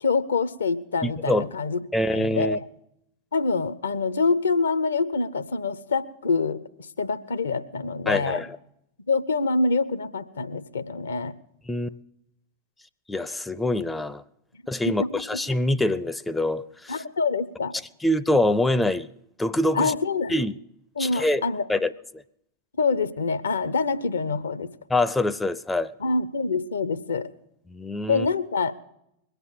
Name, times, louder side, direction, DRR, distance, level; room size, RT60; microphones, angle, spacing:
voice 1, 0.0-1.8 2.1-2.7 3.3-6.6 7.0-8.4 9.1-11.3 14.8-15.4 16.9-17.7 19.7-20.3 21.0-21.7 22.8-24.7 26.0-27.3 28.1-28.7, left 4 dB, 70° left, 14 dB, 0.8 m, -25 dB
voice 2, 1.0-1.5 1.9-2.6 8.1-8.6 11.7-11.9 13.1-14.2 14.7-17.0 18.0-19.1 19.4-19.9 20.3-20.5 21.0-21.4 21.7-22.2 24.9-25.9 27.7-28.3, left 1 dB, 10° left, 15 dB, 0.5 m, -25 dB
21.5 x 8.0 x 7.4 m, 0.79 s
figure-of-eight pair, 90°, 0 cm